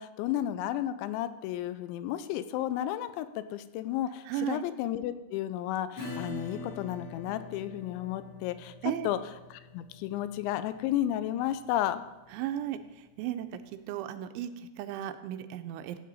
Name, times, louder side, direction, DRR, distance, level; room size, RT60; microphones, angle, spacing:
voice 1, 0.0-8.7 9.0-9.2 9.5-12.0, left 12 dB, 80° left, 13 dB, 2.8 m, -32 dB
voice 2, 4.3-4.6 8.8-9.1 12.3-13.6 13.9-16.0, right 11 dB, 85° right, 9 dB, 3.0 m, -35 dB
Acoustic guitar / Strum, 6.0-13.2, left 2 dB, 40° left, 2.5 m, -45 dB
15.5 x 8.9 x 4.1 m, 1.1 s
omnidirectional pair, 5.4 m